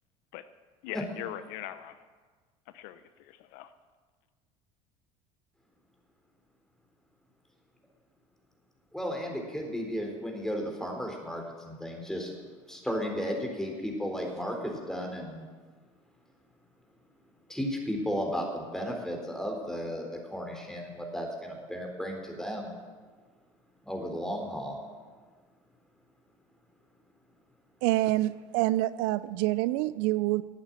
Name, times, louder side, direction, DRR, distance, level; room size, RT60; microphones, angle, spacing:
voice 1, 0.8-1.9 2.7-3.7, left 12 dB, 70° left, 12 dB, 0.7 m, -41 dB
voice 2, 8.9-12.3 12.7-15.5 17.5-22.8 23.8-24.8, equal, 5° left, 2 dB, 3.7 m, -34 dB
voice 3, 27.8-30.4, right 17 dB, 70° right, 17 dB, 0.4 m, -27 dB
12.0 x 8.8 x 8.6 m, 1.5 s
hypercardioid pair, 80°, 16 cm